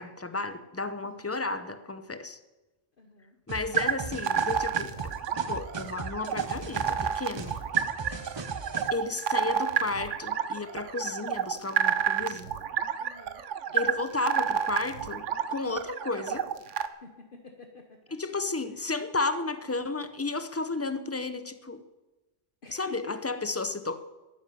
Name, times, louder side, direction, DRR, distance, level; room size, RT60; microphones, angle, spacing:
voice 1, 0.0-2.4 3.5-5.0 5.5-7.6 8.9-12.5 13.7-16.5 18.1-21.8 22.7-24.0, left 3 dB, 15° left, 11 dB, 0.6 m, -33 dB
voice 2, 3.0-3.4 7.4-7.5 13.0-13.4 17.0-18.2 18.8-18.9 22.6-23.2, left 3 dB, 45° left, 3 dB, 1.3 m, -48 dB
sound 1, 3.5-8.9, right 3 dB, 25° right, 0.7 m, -39 dB
sound 2, 3.7-16.9, right 8 dB, 80° right, 1.1 m, -30 dB
13.0 x 9.5 x 9.9 m, 1.2 s
omnidirectional pair, 1.2 m